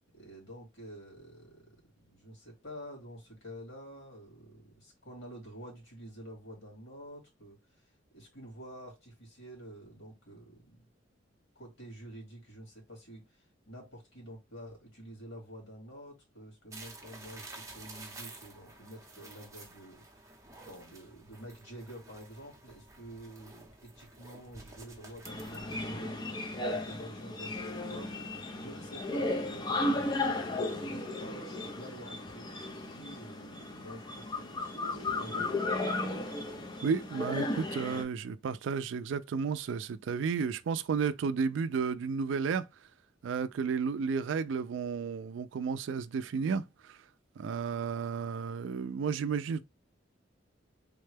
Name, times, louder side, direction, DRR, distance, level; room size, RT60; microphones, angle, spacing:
voice 1, 0.1-1.8 2.1-10.8 11.6-26.3 26.6-35.7, equal, 85° left, 2.2 m, -49 dB
sound 1, 16.7-25.8, right 2 dB, 15° right, 0.8 m, -51 dB
sound 2, 25.2-38.0, left 2 dB, 25° left, 0.6 m, -35 dB
voice 2, 36.8-42.7 43.2-46.6 47.4-49.6, right 5 dB, 70° right, 0.3 m, -32 dB
3.6 x 2.2 x 3.2 m
head